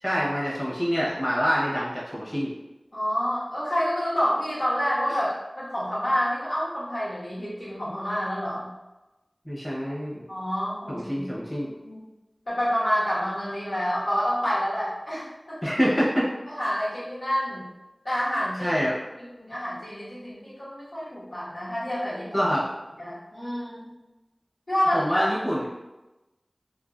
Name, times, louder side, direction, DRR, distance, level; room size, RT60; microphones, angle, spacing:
voice 1, 0.0-2.5 5.1-5.2 9.4-10.2 10.9-11.7 15.6-16.3 18.6-19.0 22.3-22.7 24.9-25.7, equal, 25° left, -6 dB, 1.0 m, -26 dB
voice 2, 2.9-5.3 5.6-8.7 10.3-11.3 11.6-12.1 12.5-15.7 16.5-17.6 18.0-18.7 19.2-22.5 23.0-23.9 24.7-25.2, equal, 85° left, -10 dB, 1.3 m, -28 dB
2.6 x 2.5 x 2.5 m, 1.0 s
wide cardioid pair, 40°, 0 cm